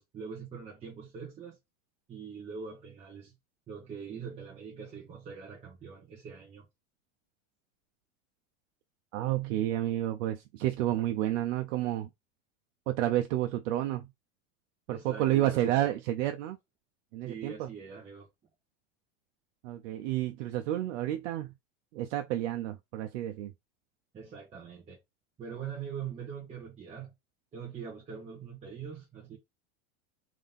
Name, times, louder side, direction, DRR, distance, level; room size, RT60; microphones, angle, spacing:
voice 1, 0.0-1.6 2.1-3.3 3.7-6.7 14.9-15.9 17.2-18.3 24.1-25.0 25.4-27.1 27.5-29.4, right 6 dB, 15° right, 0.8 m, -43 dB
voice 2, 9.1-12.1 12.9-14.1 14.9-16.6 17.1-17.7 19.6-21.5 21.9-23.5, right 13 dB, 90° right, 0.6 m, -30 dB
3.7 x 2.7 x 3.4 m
supercardioid pair, 165°, 37 cm